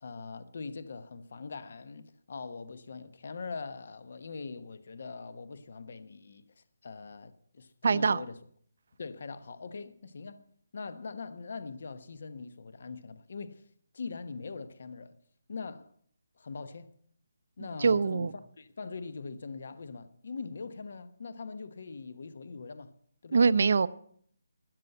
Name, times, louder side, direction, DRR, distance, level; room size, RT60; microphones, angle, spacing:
voice 1, 0.0-8.4 9.0-10.5 10.7-13.6 13.9-15.1 15.5-15.9 16.4-16.9 17.6-18.3 18.6-22.9 23.2-23.4, left 4 dB, 50° left, 1.1 m, -42 dB
voice 2, 7.8-8.2 17.8-18.3 23.3-23.9, right 5 dB, 55° right, 0.6 m, -23 dB
13.5 x 9.5 x 7.9 m
hypercardioid pair, 175°, 0 cm